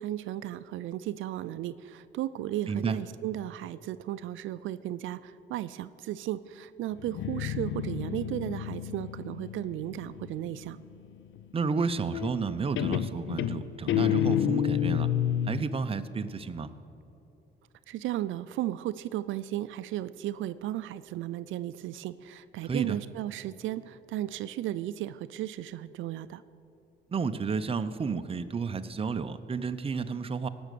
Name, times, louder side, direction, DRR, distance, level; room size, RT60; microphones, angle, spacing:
voice 1, 0.0-10.8 17.9-26.4, right 13 dB, 80° right, 14 dB, 0.4 m, -35 dB
voice 2, 2.7-3.0 11.5-15.1 15.5-16.7 22.6-23.0 27.1-30.5, right 5 dB, 30° right, 10 dB, 0.6 m, -31 dB
Guitar, 7.0-10.6 12.1-12.5 12.8-15.7, left 10 dB, 75° left, 0.6 m, -29 dB
17.5 x 6.2 x 6.7 m, 3.0 s
cardioid pair, 90°, 20 cm